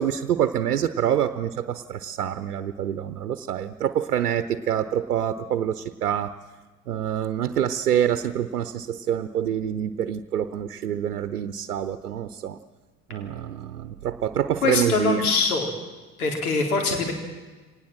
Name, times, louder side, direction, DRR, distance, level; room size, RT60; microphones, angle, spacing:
voice 1, 0.0-6.3 6.9-12.6 13.1-15.3, right 10 dB, 80° right, 12 dB, 0.9 m, -26 dB
voice 2, 14.6-15.7 16.2-17.1, left 4 dB, 75° left, 3 dB, 4.0 m, -23 dB
24.0 x 19.0 x 7.5 m, 1.2 s
figure-of-eight pair, 60°, 45 cm